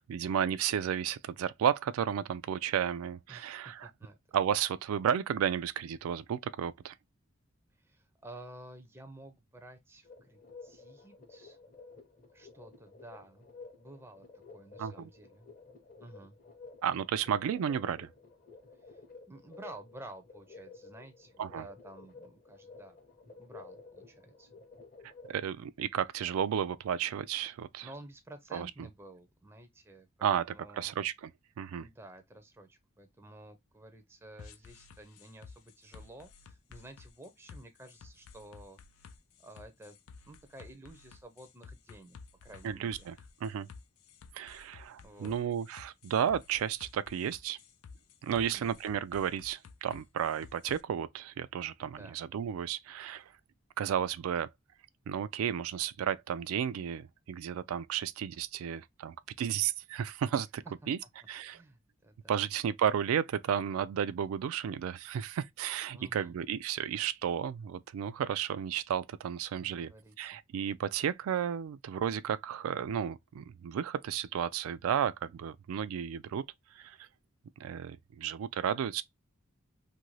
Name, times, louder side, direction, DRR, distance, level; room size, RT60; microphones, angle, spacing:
voice 1, 0.0-3.9 4.3-6.9 14.8-15.1 16.8-18.1 21.4-21.6 25.3-27.9 28.5-28.7 30.2-30.4 30.7-31.3 31.6-31.9 42.6-43.1 43.4-43.7 44.3-47.6 48.2-53.3 53.8-54.5 55.1-60.6 60.9-61.0 61.3-61.6 62.3-69.9 70.2-76.4 76.8-77.1 77.6-79.0, right 9 dB, 85° right, 0.3 m, -33 dB
voice 2, 3.3-4.2 7.8-11.6 12.3-13.5 13.8-15.5 16.0-16.4 18.8-19.0 19.3-23.0 23.4-24.5 27.8-31.0 31.8-38.8 39.4-40.0 40.2-43.3 44.7-45.4 48.3-48.7 51.8-52.2 60.8-60.9 61.4-62.4 65.9-66.4 69.6-70.4, right 1 dB, 10° right, 0.4 m, -52 dB
sound 1, 10.0-25.4, left 4 dB, 40° left, 0.7 m, -53 dB
sound 2, 34.4-50.8, left 5 dB, 85° left, 0.4 m, -53 dB
2.6 x 2.6 x 3.0 m
head